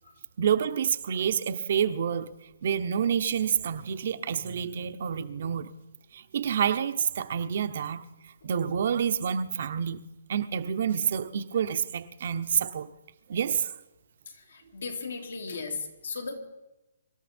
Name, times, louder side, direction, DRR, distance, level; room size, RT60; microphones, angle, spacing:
voice 1, 0.4-2.3 2.6-5.7 6.1-8.0 8.4-10.0 10.3-12.9 13.3-13.7, right 8 dB, 45° right, 12 dB, 0.8 m, -28 dB
voice 2, 14.3-16.4, left 4 dB, 80° left, 3 dB, 2.8 m, -36 dB
25.0 x 13.0 x 4.4 m, 0.97 s
hypercardioid pair, 175°, 0 cm